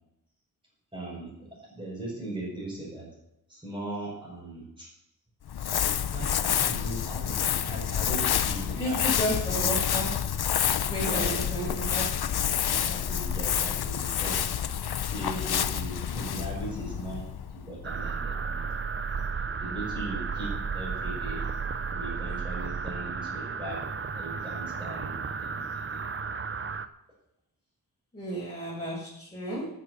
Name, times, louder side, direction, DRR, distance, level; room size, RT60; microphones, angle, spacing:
voice 1, 0.9-3.1 3.5-4.9 6.1-9.6 11.0-11.5 11.8-11.9 12.6-14.4 15.0-17.2 17.5-18.7 19.6-21.4 21.9-23.8 24.1-26.0, right 2 dB, 15° right, -8 dB, 6.4 m, -39 dB
Crumpling crinkling, 5.5-17.9, left 9 dB, 75° left, 0.7 m, -28 dB
voice 2, 8.8-10.1 10.9-12.0 28.1-29.7, right 1 dB, 15° left, -9 dB, 6.0 m, -32 dB
sound 1, 17.8-26.9, right 5 dB, 35° right, 0.7 m, -33 dB
14.0 x 8.7 x 6.9 m, 0.83 s
wide cardioid pair, 130°, 38 cm